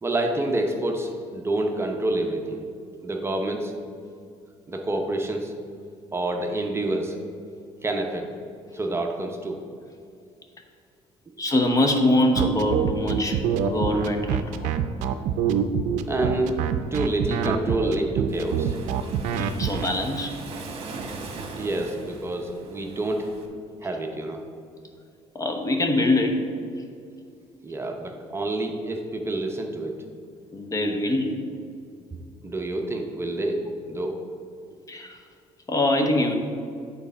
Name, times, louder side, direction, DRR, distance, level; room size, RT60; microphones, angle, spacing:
voice 1, 0.0-2.6 3.0-3.7 4.7-5.5 6.1-7.1 7.8-8.3 8.7-9.6 16.1-16.7 16.9-18.7 21.5-23.3 23.8-24.4 27.6-30.0 32.1-32.2 32.4-34.2, right 2 dB, 20° right, 3 dB, 0.7 m, -28 dB
voice 2, 11.4-14.7 19.3-20.4 25.3-26.5 30.5-31.5 34.9-35.2 35.7-36.3, left 1 dB, 30° left, 4 dB, 0.9 m, -24 dB
sound 1, 12.4-19.9, right 8 dB, 85° right, 0.5 m, -25 dB
Waves surf, 18.3-23.5, right 3 dB, 50° right, 1.1 m, -40 dB
8.1 x 4.1 x 5.4 m, 2.3 s
cardioid pair, 105°, 12 cm